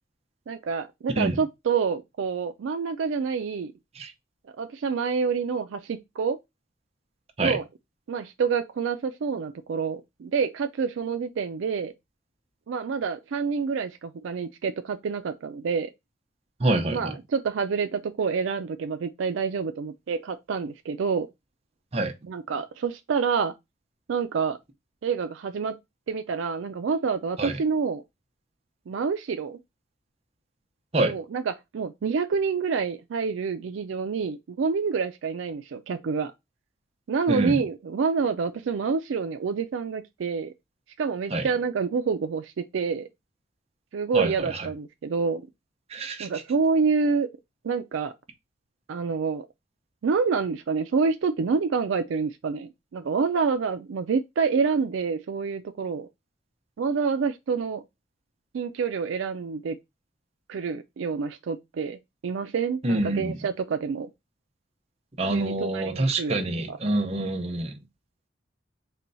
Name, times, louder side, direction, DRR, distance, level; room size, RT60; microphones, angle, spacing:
voice 1, 0.5-3.7 4.6-6.4 7.4-7.6 8.1-11.9 12.7-15.9 16.9-21.3 22.2-23.5 24.1-24.6 25.0-25.8 26.1-28.0 28.9-29.6 31.0-36.3 37.1-40.5 41.0-43.1 43.9-45.4 46.2-47.3 47.6-48.1 48.9-49.4 50.0-56.1 56.8-57.8 58.5-59.8 60.5-62.0 62.2-64.1 65.3-66.3 66.7-66.8, right 5 dB, 75° right, 0.4 m, -27 dB
voice 2, 16.6-17.1 21.9-22.1 27.4-27.6 30.9-31.2 37.3-37.6 41.3-41.5 44.1-44.6 45.9-46.3 62.8-63.4 65.2-67.8, right 2 dB, 30° right, 0.7 m, -26 dB
4.3 x 2.2 x 3.9 m
head